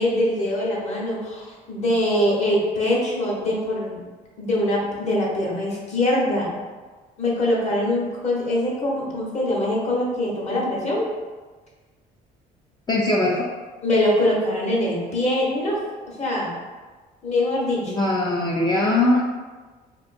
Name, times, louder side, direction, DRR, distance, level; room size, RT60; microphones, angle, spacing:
voice 1, 0.0-4.0 4.4-6.5 7.2-11.1 13.8-15.8 16.1-16.5 17.2-17.9, left 1 dB, 40° left, -4 dB, 1.1 m, -23 dB
voice 2, 12.9-13.5 17.9-19.2, left 2 dB, 25° left, -3 dB, 0.4 m, -20 dB
3.6 x 2.7 x 2.6 m, 1.3 s
cardioid pair, 110°, 17 cm